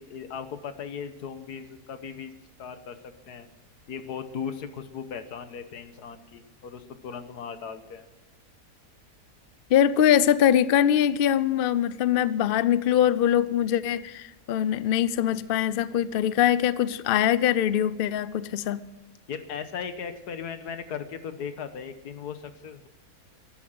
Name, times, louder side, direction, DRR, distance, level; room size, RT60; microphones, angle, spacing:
voice 1, 0.0-2.3 2.6-3.0 3.2-3.5 3.9-8.1 15.3-15.4 19.3-22.9, left 7 dB, 80° left, 10 dB, 1.6 m, -37 dB
voice 2, 9.7-18.8, left 10 dB, 65° left, 16 dB, 0.5 m, -23 dB
14.0 x 10.5 x 7.7 m, 1.0 s
omnidirectional pair, 1.6 m